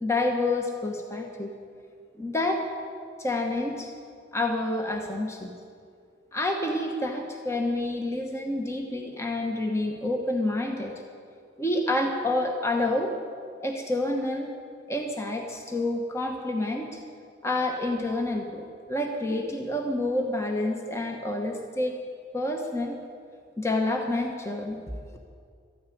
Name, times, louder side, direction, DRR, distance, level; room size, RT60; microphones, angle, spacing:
voice 1, 0.0-1.5 2.2-2.7 3.2-3.9 4.3-5.5 6.3-10.9 11.6-13.1 13.6-14.5 14.9-17.0 17.4-22.0 22.3-23.0 23.6-25.2, left 2 dB, 15° left, 2 dB, 1.0 m, -28 dB
13.5 x 9.5 x 9.2 m, 2.2 s
head